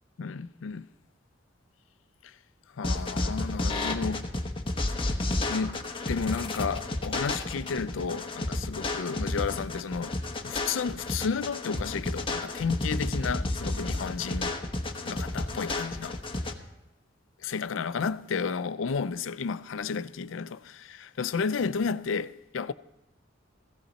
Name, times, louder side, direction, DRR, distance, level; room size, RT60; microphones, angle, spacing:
voice 1, 0.2-0.9 2.2-2.4 2.7-4.3 5.4-5.8 6.1-10.2 10.4-14.6 15.0-16.2 17.4-22.7, left 5 dB, 80° left, 0.5 m, -32 dB
sound 1, 2.8-16.5, left 2 dB, 25° left, 1.0 m, -31 dB
15.5 x 15.5 x 4.1 m
head